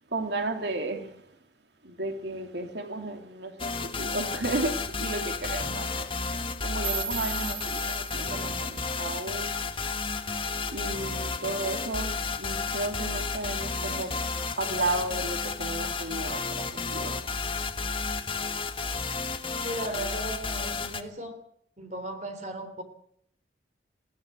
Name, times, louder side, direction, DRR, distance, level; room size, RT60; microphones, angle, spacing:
voice 1, 0.1-1.2 1.8-6.1 6.6-9.5 10.7-14.2 14.6-17.2, right 2 dB, 75° right, 2.6 m, -33 dB
sound 1, 3.6-21.0, left 4 dB, 30° left, 1.5 m, -32 dB
sound 2, 6.8-9.8, right 7 dB, 25° right, 1.6 m, -38 dB
voice 2, 19.6-21.4 21.8-22.8, right 1 dB, 40° right, 3.6 m, -36 dB
20.5 x 16.0 x 8.2 m
head